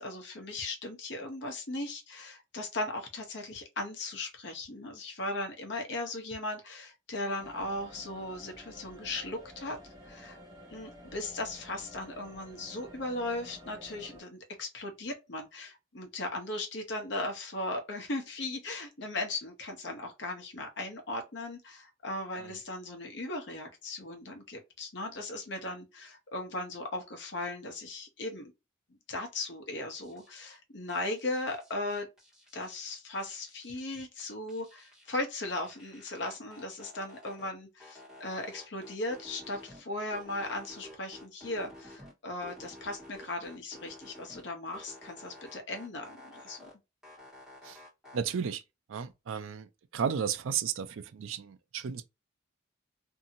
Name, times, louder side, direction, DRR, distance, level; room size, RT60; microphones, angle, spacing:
voice 1, 0.0-9.8 10.0-10.4 10.7-28.5 29.1-32.1 32.5-46.6, left 2 dB, 60° left, 0.8 m, -37 dB
sound 1, 7.4-14.2, equal, 20° right, 0.6 m, -51 dB
sound 2, 30.0-30.6 30.9-32.9 33.2-35.2 35.5-37.5 37.8-39.8 40.1-42.1 42.4-44.4 44.7-46.7 47.0-48.2, left 1 dB, 5° right, 1.3 m, -51 dB
voice 2, 48.1-48.6 48.9-49.7 49.9-52.0, right 7 dB, 80° right, 0.4 m, -33 dB
2.7 x 2.6 x 2.7 m
head